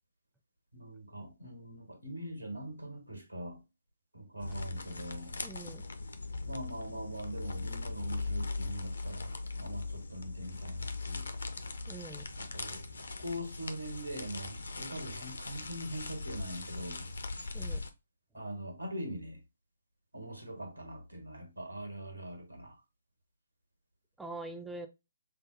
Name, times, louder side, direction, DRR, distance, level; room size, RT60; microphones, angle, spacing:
voice 1, 0.7-3.6 4.1-5.4 6.4-11.3 12.4-17.1 18.3-19.4 20.1-22.8, right 1 dB, 85° right, 1.2 m, -42 dB
sound 1, 4.4-17.9, left 3 dB, 65° left, 0.5 m, -40 dB
voice 2, 5.4-5.9 11.9-12.2 17.5-17.8 24.2-24.9, right 2 dB, 5° right, 0.4 m, -43 dB
5.4 x 2.0 x 2.5 m
figure-of-eight pair, 135°, 0 cm